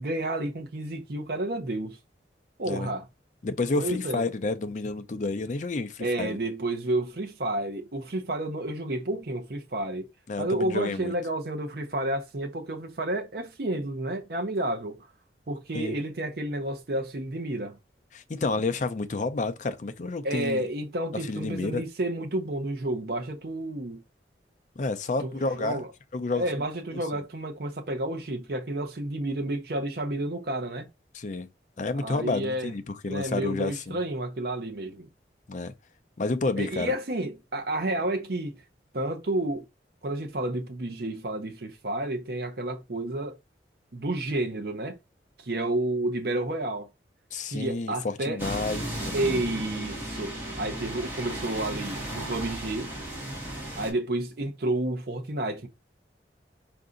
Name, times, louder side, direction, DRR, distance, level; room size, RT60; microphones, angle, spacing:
voice 1, 0.0-2.0 2.6-3.0 3.7-4.2 6.0-10.1 10.4-15.0 15.5-17.8 20.2-24.0 25.2-25.9 26.3-30.9 32.0-32.7 33.1-35.1 36.6-38.5 38.9-39.6 40.0-43.4 43.9-45.0 45.4-46.9 47.5-48.4 49.1-52.9 53.8-55.7, right 1 dB, 60° right, 0.6 m, -30 dB
voice 2, 3.4-6.4 10.3-11.1 15.7-16.0 18.1-20.6 21.1-21.8 24.8-25.8 26.1-26.6 26.9-27.2 31.1-31.5 31.8-34.0 35.5-35.7 36.2-36.9 47.3-49.4, left 3 dB, 40° left, 0.4 m, -30 dB
sound 1, 48.4-53.9, right 1 dB, 10° right, 1.5 m, -35 dB
4.6 x 2.6 x 3.8 m
head